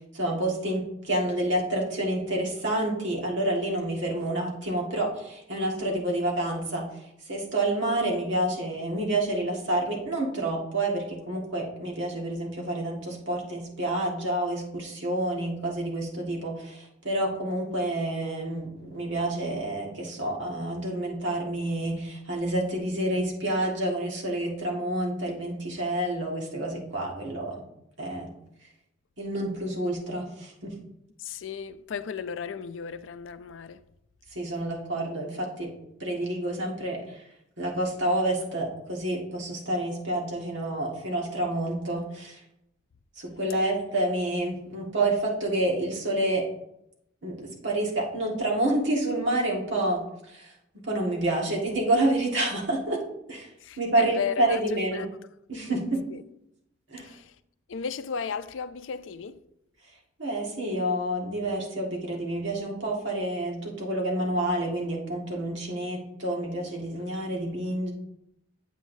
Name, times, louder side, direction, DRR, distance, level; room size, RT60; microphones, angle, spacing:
voice 1, 0.1-27.6 28.0-28.3 29.2-30.7 34.3-35.7 36.0-37.2 37.6-42.4 43.1-46.5 47.2-53.0 53.3-53.5 53.8-55.0 55.5-56.1 56.9-57.1 60.2-67.9, right 1 dB, 70° right, 1.8 m, -28 dB
voice 2, 31.2-33.8 53.6-55.1 56.1-56.2 57.0-57.4 57.7-59.4, left 6 dB, 85° left, 0.4 m, -35 dB
8.3 x 8.0 x 2.7 m
head